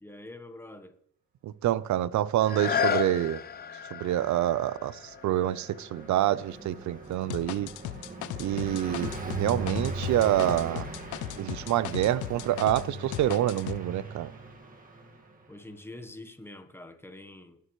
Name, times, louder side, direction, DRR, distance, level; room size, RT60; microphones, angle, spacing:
voice 1, 0.0-0.9 3.0-3.2 15.5-17.6, left 2 dB, 10° left, 1.2 m, -45 dB
voice 2, 1.4-3.4 3.9-7.7 8.4-10.9 11.4-14.3, right 13 dB, 70° right, 0.6 m, -27 dB
sound 1, 2.4-8.0 8.6-8.7, left 8 dB, 30° left, 0.5 m, -34 dB
Car passing by, 4.6-15.4, right 2 dB, 30° right, 1.9 m, -40 dB
sound 2, 7.3-12.9 13.1-13.8, left 16 dB, 90° left, 0.4 m, -37 dB
18.5 x 6.8 x 3.2 m
cardioid pair, 90°, 30 cm